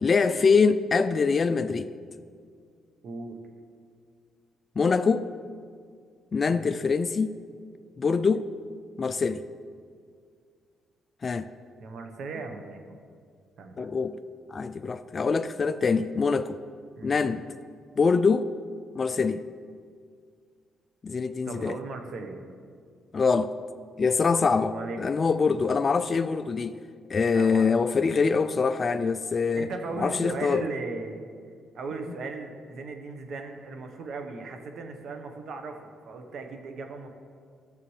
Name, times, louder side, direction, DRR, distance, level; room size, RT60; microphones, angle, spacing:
voice 1, 0.0-1.9 4.8-5.3 6.3-7.4 8.0-8.5 9.0-9.4 11.2-11.5 13.8-14.2 14.5-16.6 17.0-17.5 18.0-18.5 18.9-19.4 21.0-21.8 23.1-23.5 24.0-26.8 27.1-29.7 30.0-30.6, left 5 dB, 40° left, 11 dB, 0.3 m, -24 dB
voice 2, 3.0-3.4 6.5-6.8 11.8-12.8 13.6-13.9 16.0-16.2 17.0-17.2 21.5-22.4 24.7-25.0 27.3-27.7 29.6-31.3 31.7-37.1, right 3 dB, 65° right, 5 dB, 1.0 m, -37 dB
13.0 x 6.8 x 3.2 m, 2.1 s
cardioid pair, 90°, 0 cm